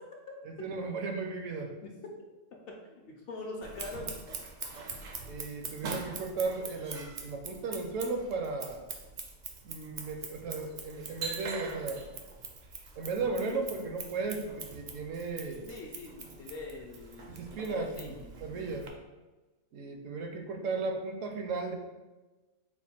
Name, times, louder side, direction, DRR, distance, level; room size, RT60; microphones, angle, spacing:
voice 1, 0.4-1.7 5.3-8.8 9.6-12.0 13.0-15.7 17.3-18.0 18.4-18.9 19.7-21.7, right 4 dB, 80° right, 4 dB, 1.0 m, -35 dB
voice 2, 2.8-4.1 15.7-18.9, left 3 dB, 60° left, 0 dB, 0.7 m, -44 dB
Scissors, 3.6-18.9, right 4 dB, 60° right, 0.5 m, -43 dB
4.2 x 2.2 x 4.2 m, 1.2 s
omnidirectional pair, 1.3 m